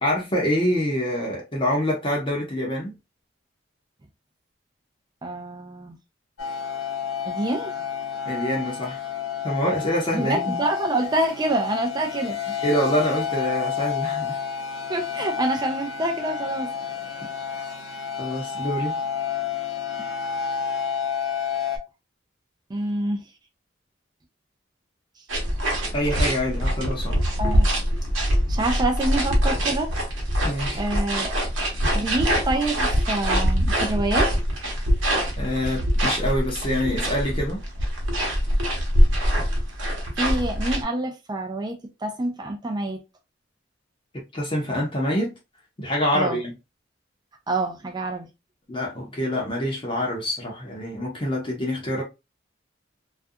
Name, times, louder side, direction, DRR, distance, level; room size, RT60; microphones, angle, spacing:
voice 1, 0.0-2.9 8.3-9.0 9.4-10.5 12.6-14.4 18.2-18.9 25.9-27.2 30.4-30.8 35.4-37.6 44.3-45.3 45.8-46.5 48.7-52.0, equal, 25° left, 0.7 m, -26 dB
voice 2, 5.2-6.0 7.2-7.7 10.1-12.6 14.9-16.7 22.7-23.2 27.4-27.7 28.5-30.0 30.8-31.3 31.9-34.3 40.2-43.0 46.1-46.4 47.5-48.3, right 2 dB, 20° right, 0.4 m, -27 dB
sound 1, 6.4-21.8, left 7 dB, 85° left, 0.7 m, -30 dB
sound 2, 25.3-40.8, equal, 85° right, 0.9 m, -23 dB
2.4 x 2.2 x 2.6 m
head